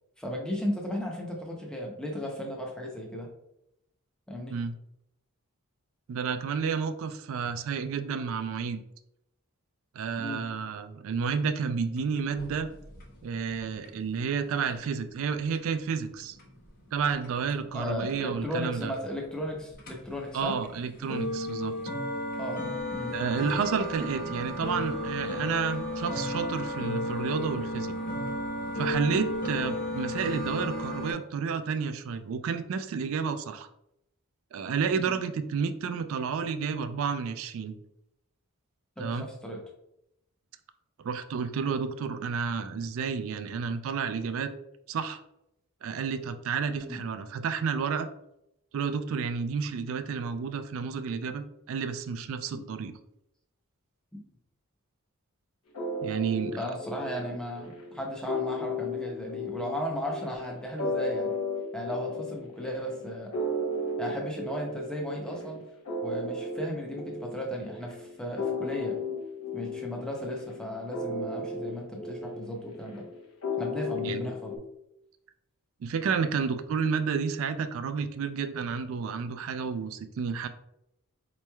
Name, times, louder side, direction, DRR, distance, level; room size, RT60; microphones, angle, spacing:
voice 1, 0.2-3.3 4.3-4.6 10.2-10.4 17.7-20.5 22.4-22.6 22.9-23.1 35.0-35.2 39.0-39.6 46.8-47.0 52.5-52.7 54.1-54.2 56.5-61.3 61.7-63.3 64.0-65.6 66.0-69.0 69.5-73.0 73.6-74.6, equal, 5° left, -1 dB, 0.6 m, -35 dB
voice 2, 6.1-8.8 9.9-12.7 13.2-16.4 16.9-18.9 20.3-21.8 23.1-28.0 28.8-33.7 34.5-37.8 39.0-39.3 41.0-44.5 44.9-45.2 45.8-48.1 48.7-52.9 56.0-56.6 74.0-74.3 75.8-80.5, right 6 dB, 65° right, 10 dB, 0.3 m, -31 dB
sound 1, 12.0-31.1, left 1 dB, 40° left, 0.7 m, -35 dB
sound 2, 55.7-74.6, left 2 dB, 80° left, 0.9 m, -35 dB
4.3 x 3.0 x 2.2 m, 0.83 s
head